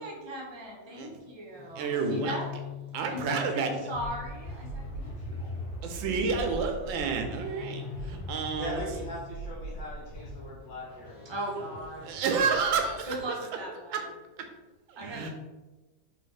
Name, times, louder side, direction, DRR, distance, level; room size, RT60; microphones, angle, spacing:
voice 1, 0.0-2.5 3.1-5.6 11.2-12.1 13.1-14.0 15.0-15.3, equal, 35° right, -3 dB, 0.4 m, -38 dB
sound 1, 1.3-13.2, left 1 dB, 70° left, 1.5 m, -40 dB
voice 2, 1.6-2.4 2.9-3.7 5.8-8.8 12.0-13.1 13.9-14.0 14.9-15.3, right 5 dB, 90° right, 4 dB, 1.4 m, -30 dB
voice 3, 8.6-11.2, equal, 50° left, -6 dB, 1.8 m, -40 dB
4.1 x 2.7 x 4.0 m, 1.2 s
omnidirectional pair, 2.1 m